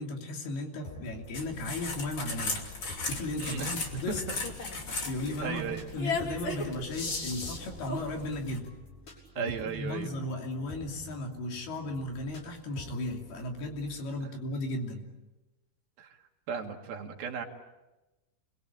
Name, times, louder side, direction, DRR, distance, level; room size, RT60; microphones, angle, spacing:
voice 1, 0.0-2.6 3.1-4.2 4.7-8.7 9.4-15.1, left 1 dB, 70° left, 2 dB, 4.9 m, -35 dB
sound 1, 0.8-14.0, left 1 dB, 50° left, 7.4 m, -49 dB
sound 2, 1.3-8.6, left 3 dB, 35° left, 3.1 m, -36 dB
voice 2, 3.4-3.7 5.4-5.8 9.4-10.1 16.0-16.1 16.5-17.5, right 6 dB, 65° right, 2 dB, 3.8 m, -35 dB
28.5 x 22.0 x 8.8 m, 1.0 s
omnidirectional pair, 4.8 m